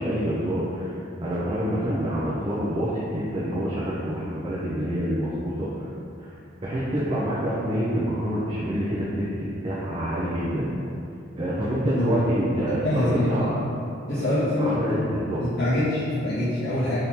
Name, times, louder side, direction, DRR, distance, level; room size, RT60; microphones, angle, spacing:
voice 1, 0.0-5.9 6.2-9.3 9.6-10.7 11.3-13.6 14.2-15.4, equal, 30° right, -8 dB, 0.4 m, -27 dB
voice 2, 12.8-13.5 14.1-15.0 15.4-17.0, left 1 dB, 55° left, -11 dB, 0.6 m, -24 dB
3.5 x 2.8 x 2.8 m, 2.6 s
head